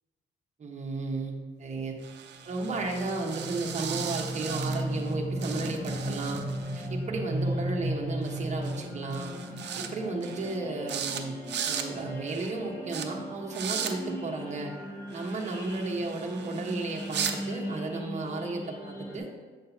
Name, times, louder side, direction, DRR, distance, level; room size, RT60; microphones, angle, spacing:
voice 1, 0.6-1.9 2.5-6.4 6.7-9.3 9.7-11.3 11.6-14.7 15.1-19.3, right 3 dB, 35° right, 0 dB, 1.2 m, -34 dB
sound 1, 2.0-5.1 5.4-6.9 8.2-8.4 8.6-8.9 9.1-9.9 10.2-10.6 10.9-11.2 11.5-11.9 12.3-12.5 12.9-13.1 13.5-13.9 15.1-17.4, right 8 dB, 60° right, 0.7 m, -37 dB
sound 2, 2.4-19.2, right 1 dB, 15° left, 1.8 m, -36 dB
8.0 x 6.5 x 2.8 m, 1.4 s
cardioid pair, 90°, 20 cm